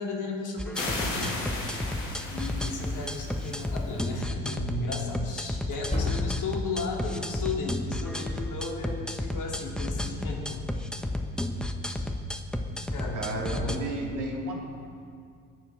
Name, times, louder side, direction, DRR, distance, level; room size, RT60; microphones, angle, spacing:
voice 1, 0.0-1.4 2.3-10.6 11.8-12.1 12.9-13.9, left 3 dB, 50° left, -1 dB, 3.3 m, -35 dB
sound 1, 0.6-13.8, left 1 dB, ahead, 1.1 m, -32 dB
sound 2, 0.7-4.1, left 2 dB, 80° left, 2.2 m, -36 dB
sound 3, 3.4-3.6 5.6-6.7, left 2 dB, 20° left, 3.2 m, -31 dB
voice 2, 13.1-14.5, right 2 dB, 50° right, -1 dB, 3.4 m, -33 dB
21.5 x 7.4 x 5.8 m, 2.3 s
hypercardioid pair, 60°, 39 cm